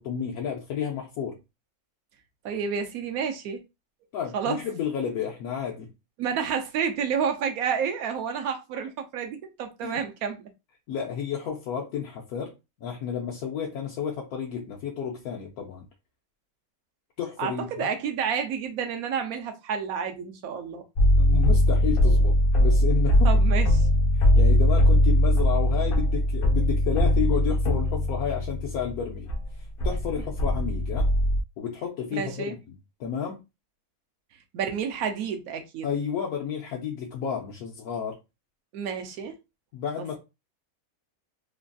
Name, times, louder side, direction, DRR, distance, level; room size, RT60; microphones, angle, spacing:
voice 1, 0.0-1.4 4.1-5.9 9.8-10.0 10.9-12.5 12.8-15.9 17.2-17.9 21.2-23.4 24.1-29.3 29.8-31.1 31.6-33.4 35.8-38.2 39.7-40.2, left 7 dB, 90° left, 1.1 m, -31 dB
voice 2, 2.4-3.6 4.3-4.6 6.2-10.5 17.4-20.8 23.2-23.7 32.1-32.6 34.5-35.9 38.7-39.4, right 7 dB, 85° right, 1.1 m, -30 dB
sound 1, 21.0-29.4 29.8-31.4, left 1 dB, 70° left, 0.5 m, -21 dB
3.3 x 2.2 x 2.4 m
omnidirectional pair, 1.5 m